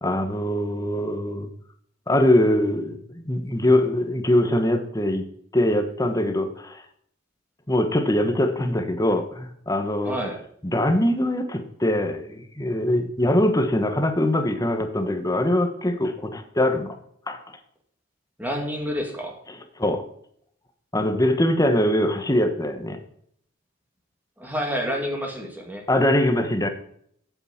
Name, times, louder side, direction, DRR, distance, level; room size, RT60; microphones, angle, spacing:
voice 1, 0.0-1.5 2.1-5.2 5.5-6.8 7.7-10.2 10.6-17.0 17.3-17.4 19.5-20.1 20.9-23.0 25.9-26.7, left 1 dB, 20° left, 7 dB, 1.2 m, -22 dB
voice 2, 10.0-10.4 18.4-19.4 24.4-25.8, equal, 10° right, 1 dB, 2.4 m, -29 dB
8.2 x 7.6 x 7.3 m, 0.66 s
head